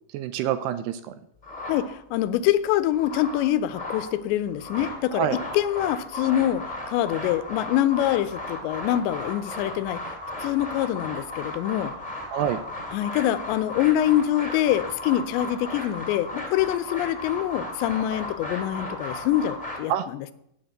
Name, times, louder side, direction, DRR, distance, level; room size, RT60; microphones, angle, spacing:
voice 1, 0.1-1.1 5.1-5.4 12.3-12.6 19.9-20.1, right 10 dB, 80° right, 12 dB, 2.5 m, -26 dB
sound 1, 1.4-2.3 2.7-4.1 4.5-19.8, left 2 dB, 15° left, 2.1 m, -35 dB
voice 2, 1.7-10.2 10.4-11.9 12.9-20.3, left 12 dB, 85° left, 14 dB, 2.9 m, -25 dB
8.7 x 7.6 x 7.8 m, 0.74 s
omnidirectional pair, 5.0 m